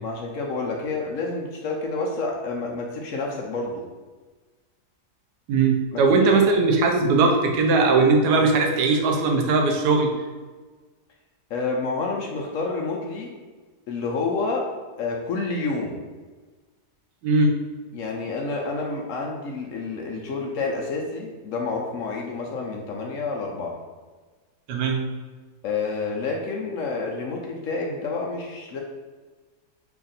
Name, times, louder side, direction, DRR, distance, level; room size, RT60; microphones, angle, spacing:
voice 1, 0.0-3.8 5.9-6.0 6.3-6.4 11.5-13.3 13.9-14.7 15.0-16.0 17.9-23.7 25.6-28.8, left 3 dB, 65° left, 0 dB, 0.8 m, -29 dB
voice 2, 5.5-10.1 17.2-17.5 24.7-25.1, right 3 dB, 90° right, 2 dB, 1.2 m, -19 dB
3.4 x 2.5 x 3.9 m, 1.4 s
omnidirectional pair, 1.7 m